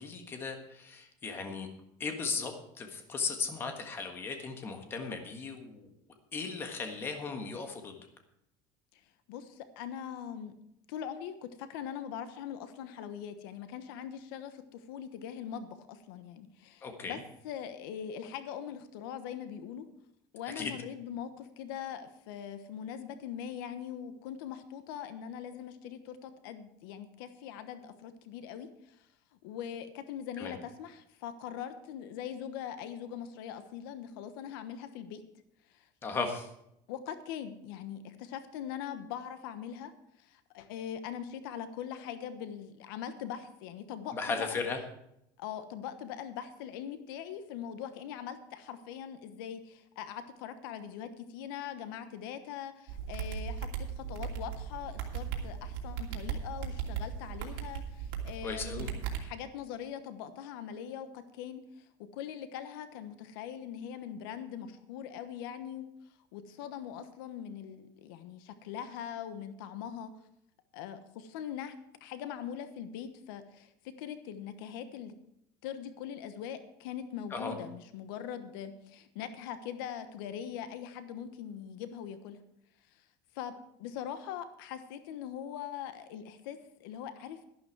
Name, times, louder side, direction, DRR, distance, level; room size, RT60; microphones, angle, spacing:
voice 1, 0.0-1.7 2.0-5.9 6.3-8.1 16.8-17.2 20.5-20.7 30.4-30.6 36.0-36.5 44.1-44.8 58.4-58.9 77.3-77.5, left 4 dB, 20° left, 5 dB, 1.5 m, -36 dB
voice 2, 9.3-10.5 10.9-17.2 17.4-19.9 20.3-29.1 29.4-35.2 35.7-35.9 36.9-39.9 40.2-44.6 45.4-53.7 54.0-65.9 66.3-70.1 70.7-75.1 75.6-82.4 83.3-87.4, left 9 dB, 80° left, 10 dB, 1.2 m, -42 dB
sound 1, 52.9-59.2, right 7 dB, 85° right, 2.8 m, -37 dB
12.0 x 11.5 x 4.7 m, 0.78 s
cardioid pair, 180°, 12 cm